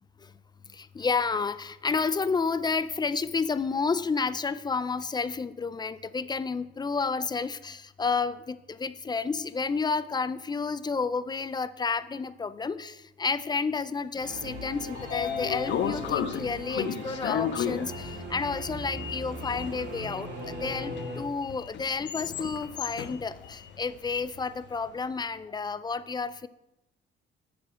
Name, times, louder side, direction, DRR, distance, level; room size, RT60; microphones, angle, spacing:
voice 1, 0.7-26.5, left 4 dB, 20° left, 15 dB, 0.4 m, -31 dB
Singing / Musical instrument, 14.2-21.2, equal, 60° right, 2.2 m, -39 dB
Sliding door, 14.5-24.7, left 9 dB, 65° left, 0.6 m, -35 dB
7.5 x 5.0 x 4.9 m, 0.89 s
cardioid pair, 90°, 20 cm